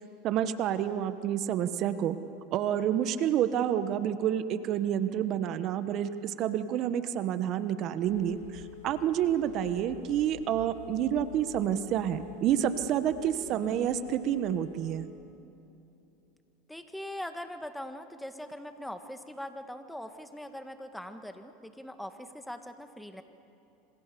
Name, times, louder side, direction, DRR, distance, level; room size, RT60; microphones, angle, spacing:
voice 1, 0.2-2.2 2.5-15.1, right 10 dB, 50° right, 12 dB, 1.2 m, -29 dB
Telephone, 8.0-15.0, left 13 dB, 85° left, 2.3 m, -48 dB
voice 2, 16.7-23.2, left 1 dB, 5° left, 7 dB, 1.8 m, -41 dB
26.5 x 26.5 x 7.0 m, 2.9 s
supercardioid pair, 105°, 0 cm